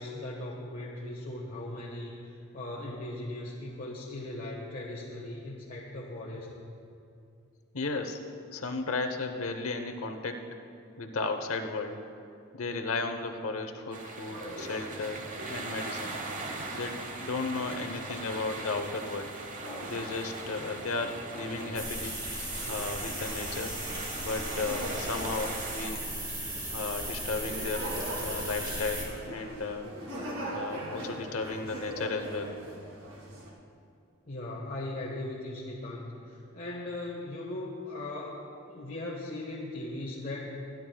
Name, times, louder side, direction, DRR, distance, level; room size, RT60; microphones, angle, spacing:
voice 1, 0.0-6.5 34.3-38.4 38.7-40.6, left 1 dB, 40° left, -5 dB, 1.4 m, -38 dB
voice 2, 7.7-8.2 8.5-10.4 11.0-12.0 12.5-15.2 15.5-16.2 16.7-19.3 19.8-22.2 22.7-23.8 24.2-26.0 26.7-27.9 28.2-29.9 30.5-32.6, left 3 dB, 75° left, 5 dB, 0.9 m, -34 dB
sound 1, 13.9-25.9, right 3 dB, 40° right, 1.0 m, -40 dB
sound 2, 14.3-33.5, equal, 85° right, 2.3 m, -42 dB
sound 3, 21.7-29.1, right 1 dB, 20° right, 2.8 m, -37 dB
23.5 x 10.5 x 2.3 m, 2.5 s
head